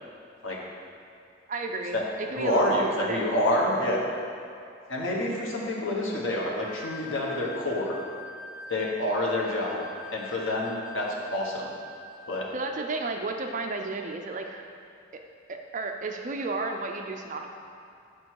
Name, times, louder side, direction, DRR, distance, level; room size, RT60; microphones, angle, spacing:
voice 1, 1.5-3.2 12.5-14.7 15.5-17.5, right 3 dB, 40° right, 4 dB, 0.4 m, -32 dB
voice 2, 2.3-4.1 4.9-8.0 8.7-9.8 10.1-11.7 12.3-12.5, left 1 dB, 80° left, -3 dB, 1.3 m, -27 dB
sound 1, 6.6-12.7, left 2 dB, 15° left, 1.3 m, -45 dB
7.5 x 5.3 x 4.7 m, 2.5 s
head